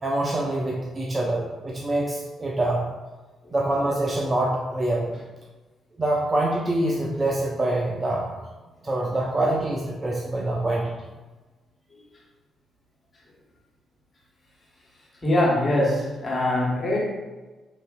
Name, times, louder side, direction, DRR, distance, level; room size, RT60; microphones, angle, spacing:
voice 1, 0.0-2.8 3.5-5.1 6.0-8.4 8.8-10.9, right 1 dB, 30° right, -2 dB, 0.4 m, -25 dB
voice 2, 15.2-17.1, left 1 dB, 35° left, -4 dB, 1.0 m, -23 dB
3.0 x 2.4 x 2.3 m, 1.2 s
hypercardioid pair, 45°, 0 cm